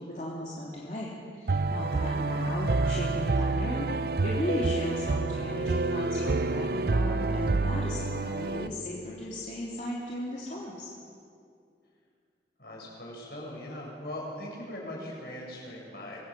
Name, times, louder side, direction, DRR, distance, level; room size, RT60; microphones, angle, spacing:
voice 1, 0.0-3.9 4.2-10.9, left 1 dB, 45° left, -5 dB, 3.2 m, -36 dB
sound 1, 1.5-8.7, right 3 dB, 55° right, 0.5 m, -28 dB
voice 2, 2.2-2.6 12.6-16.2, left 1 dB, 65° left, -3 dB, 7.8 m, -40 dB
25.5 x 20.0 x 7.7 m, 2.3 s
head